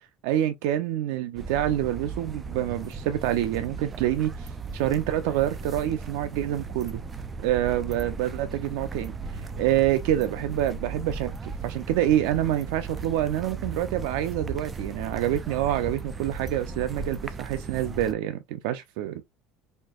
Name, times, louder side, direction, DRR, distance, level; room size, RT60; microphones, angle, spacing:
voice 1, 0.2-7.0 7.4-19.2, right 12 dB, 85° right, 0.5 m, -27 dB
sound 1, 1.4-18.1, right 4 dB, 20° right, 0.3 m, -36 dB
4.4 x 2.7 x 2.3 m
cardioid pair, 155°, 0 cm